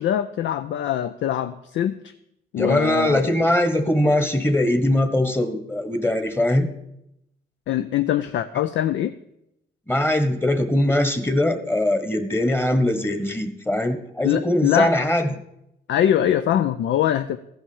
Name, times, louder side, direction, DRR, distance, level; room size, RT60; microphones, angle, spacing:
voice 1, 0.0-2.1 2.5-3.3 7.7-9.2 14.2-14.9 15.9-17.4, left 11 dB, 70° left, 11 dB, 0.5 m, -23 dB
voice 2, 2.6-6.7 9.9-15.3, left 1 dB, 10° left, 9 dB, 1.2 m, -21 dB
14.0 x 5.7 x 7.2 m, 0.81 s
cardioid pair, 90°, 20 cm